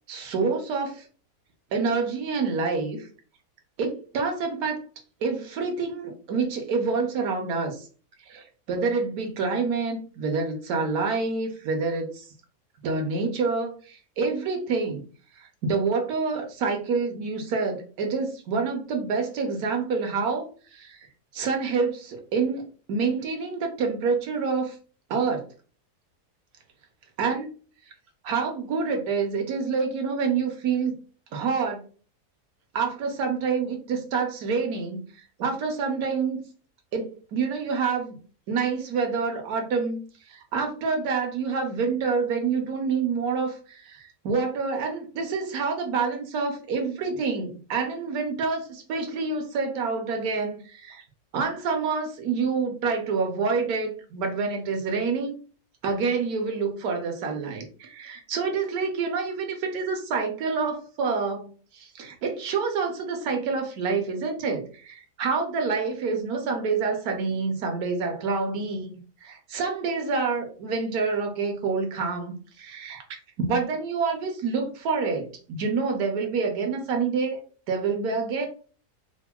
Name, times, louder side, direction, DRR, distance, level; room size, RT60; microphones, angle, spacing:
voice 1, 0.1-1.1 1.7-3.1 3.8-4.8 5.2-7.9 8.2-12.3 12.8-15.1 15.4-21.1 21.3-24.8 25.1-25.4 27.2-27.5 28.2-31.0 31.3-31.8 32.7-35.0 35.4-36.4 36.9-38.2 38.5-40.0 40.3-51.0 51.3-55.4 55.8-68.9 69.2-73.0 73.4-77.4 77.7-78.5, right 4 dB, 70° right, 3 dB, 1.1 m, -27 dB
3.5 x 2.0 x 2.2 m, 0.39 s
omnidirectional pair, 1.7 m